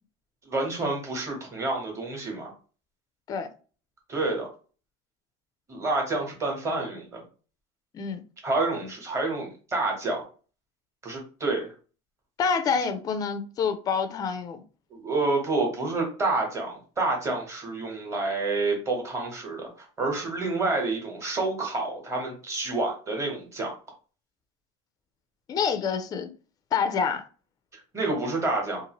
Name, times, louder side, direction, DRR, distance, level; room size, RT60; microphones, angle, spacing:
voice 1, 0.4-2.5 4.1-4.5 5.7-7.2 8.4-10.3 11.0-11.7 14.9-23.7 27.9-28.8, right 3 dB, 20° right, 1.1 m, -28 dB
voice 2, 12.4-14.6 25.5-26.3 26.7-27.2, left 6 dB, 25° left, 0.4 m, -27 dB
2.6 x 2.4 x 2.9 m
cardioid pair, 150°, 16 cm